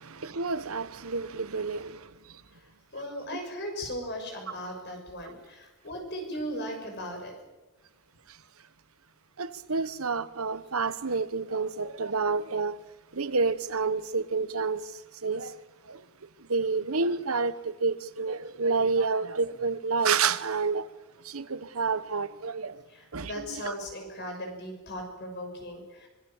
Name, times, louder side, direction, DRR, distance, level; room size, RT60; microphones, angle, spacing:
voice 1, 0.2-2.0 9.4-12.8 13.1-14.8 15.2-15.5 15.9-16.0 16.5-20.9 21.3-22.7 23.1-23.7, right 4 dB, 85° right, 1.1 m, -29 dB
voice 2, 2.9-7.3 22.9-26.1, equal, 55° left, 6.4 m, -37 dB
24.5 x 21.5 x 7.2 m
head